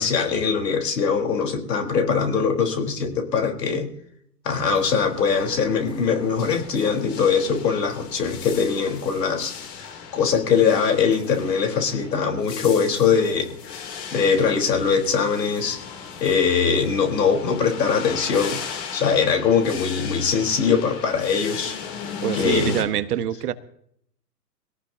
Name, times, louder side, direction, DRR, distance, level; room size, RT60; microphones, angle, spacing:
voice 1, 0.0-3.9 4.4-9.5 10.1-13.8 14.1-15.8 16.2-18.6 18.9-21.8 22.3-22.9, left 6 dB, 75° left, 3 dB, 4.1 m, -22 dB
sound 1, 4.5-22.8, left 6 dB, 35° left, 3.1 m, -37 dB
voice 2, 22.2-23.5, right 10 dB, 65° right, 12 dB, 1.3 m, -25 dB
22.5 x 17.5 x 2.8 m, 0.68 s
hypercardioid pair, 130°, 50 cm